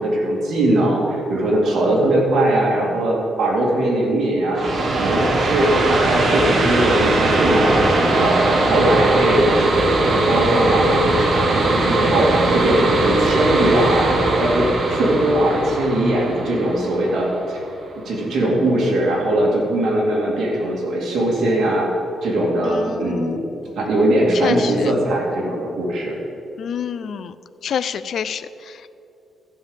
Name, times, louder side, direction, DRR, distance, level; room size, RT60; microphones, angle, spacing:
voice 1, 0.0-4.6 4.9-17.6 18.0-21.9 22.2-23.4 23.8-26.1, right 1 dB, 60° right, -3 dB, 2.7 m, -20 dB
sound 1, 4.5-17.9, right 2 dB, 40° right, 1.3 m, -20 dB
voice 2, 22.6-23.4 24.4-24.9 26.6-27.3 27.6-28.9, left 8 dB, 55° left, 14 dB, 0.4 m, -27 dB
14.0 x 5.4 x 7.3 m, 2.7 s
cardioid pair, 155°, 0 cm